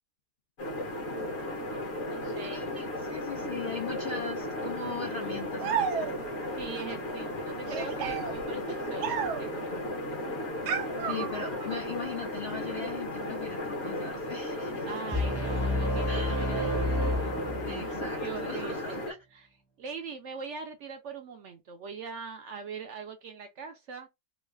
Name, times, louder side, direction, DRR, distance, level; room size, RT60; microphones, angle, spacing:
sound 1, 0.6-19.1, left 1 dB, 45° left, 1.1 m, -35 dB
voice 1, 1.9-2.7 6.5-8.6 8.9-9.7 14.9-17.3 17.6-19.0 19.3-19.5 19.8-24.1, right 5 dB, 65° right, 0.7 m, -41 dB
voice 2, 2.4-6.3 11.1-14.9 16.1-16.4 17.6-19.2, left 5 dB, 65° left, 0.5 m, -40 dB
sound 2, 5.6-6.4 7.6-9.6 10.7-11.8, right 7 dB, 85° right, 1.3 m, -33 dB
sound 3, 15.1-18.1, left 1 dB, 15° left, 0.6 m, -29 dB
3.1 x 2.4 x 3.3 m
omnidirectional pair, 1.7 m